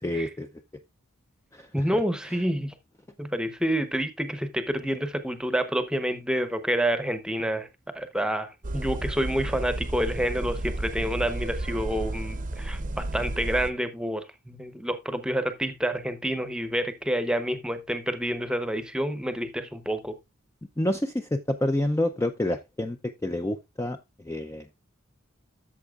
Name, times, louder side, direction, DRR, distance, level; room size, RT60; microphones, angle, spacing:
voice 1, 0.0-0.5 1.5-1.7 20.8-23.0 23.2-24.0 24.3-24.8, left 1 dB, 15° left, 0.4 m, -28 dB
voice 2, 1.7-2.7 3.2-7.7 7.9-20.2, right 1 dB, 5° right, 0.8 m, -28 dB
sound 1, 8.6-13.7, right 1 dB, 40° right, 0.7 m, -32 dB
13.5 x 6.9 x 2.4 m
head